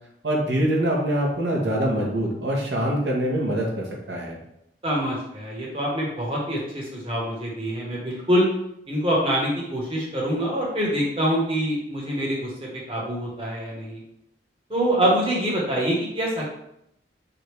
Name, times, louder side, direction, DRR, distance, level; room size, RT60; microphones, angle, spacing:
voice 1, 0.2-4.4, right 1 dB, 80° right, -1 dB, 1.1 m, -24 dB
voice 2, 4.8-8.5 8.9-14.0 14.7-16.4, equal, 30° right, -4 dB, 1.2 m, -25 dB
5.0 x 2.6 x 3.2 m, 0.78 s
head